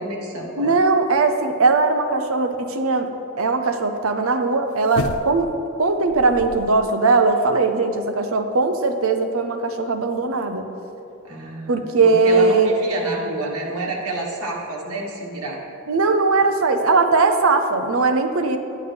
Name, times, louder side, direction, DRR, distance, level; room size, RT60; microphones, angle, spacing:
voice 1, 0.0-0.8 11.2-15.6, right 2 dB, 90° right, -2 dB, 1.5 m, -29 dB
voice 2, 0.6-3.1 3.4-5.5 5.8-10.7 11.7-12.8 15.9-18.6, right 3 dB, 70° right, 7 dB, 0.7 m, -19 dB
sound 1, 4.9-5.6 6.1-6.9 7.2-7.3, left 4 dB, 65° left, 0.3 m, -31 dB
10.5 x 8.4 x 3.4 m, 2.7 s
head